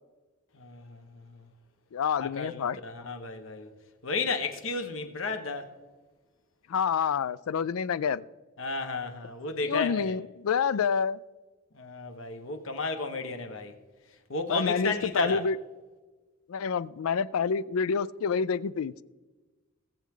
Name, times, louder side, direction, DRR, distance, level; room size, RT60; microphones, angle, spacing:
voice 1, 0.5-1.5 2.2-3.7 4.0-5.7 8.6-10.2 11.7-13.8 14.3-15.4, left 3 dB, 70° left, 1.3 m, -33 dB
voice 2, 1.9-2.8 6.7-8.2 9.7-11.2 14.5-15.6 16.5-19.0, left 6 dB, 85° left, 0.4 m, -28 dB
19.5 x 7.4 x 3.8 m
head